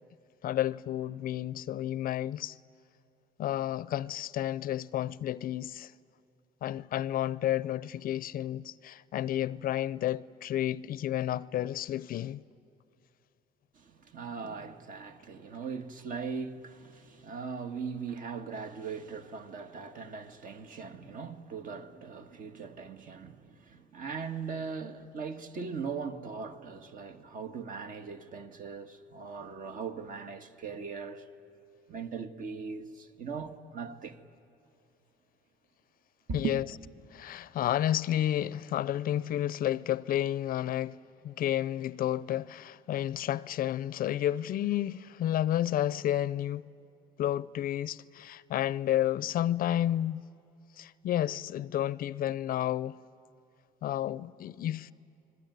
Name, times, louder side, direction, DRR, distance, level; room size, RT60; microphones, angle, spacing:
voice 1, 0.4-2.6 3.4-5.9 6.6-12.4 36.3-36.6 37.1-41.0 41.2-46.6 47.2-50.2 50.8-53.0 53.8-54.9, left 12 dB, 60° left, 0.5 m, -31 dB
voice 2, 13.7-31.3 31.9-34.2 36.3-36.6, right 5 dB, 50° right, 1.7 m, -39 dB
29.5 x 21.0 x 9.3 m
cardioid pair, 110°, 17 cm